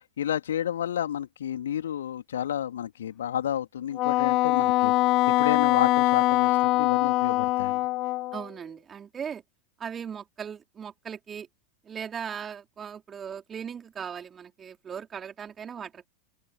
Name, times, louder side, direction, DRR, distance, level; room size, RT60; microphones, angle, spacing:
voice 1, 0.2-4.9 5.3-7.8, left 10 dB, 65° left, 3.3 m, -31 dB
Wind instrument woodwind instrument, 4.0-8.4, left 18 dB, 40° left, 0.4 m, -23 dB
voice 2, 8.3-9.4 9.8-11.5 11.8-16.1, right 7 dB, 20° right, 4.1 m, -38 dB
open air
figure-of-eight pair, 90°, 0 cm